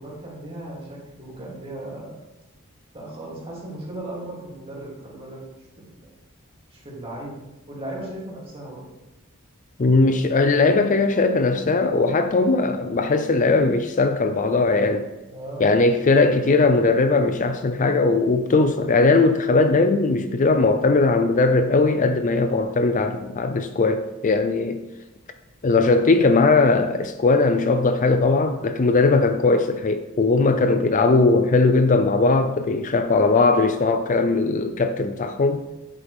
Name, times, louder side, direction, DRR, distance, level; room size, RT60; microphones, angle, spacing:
voice 1, 0.0-2.2 2.9-5.4 5.8-6.1 6.7-7.4 7.7-8.9 15.3-15.7, right 1 dB, 25° right, -5 dB, 2.9 m, -37 dB
voice 2, 9.8-15.1 15.6-24.8 25.6-35.6, left 3 dB, 35° left, 8 dB, 0.5 m, -19 dB
9.7 x 7.4 x 3.5 m, 1.0 s
head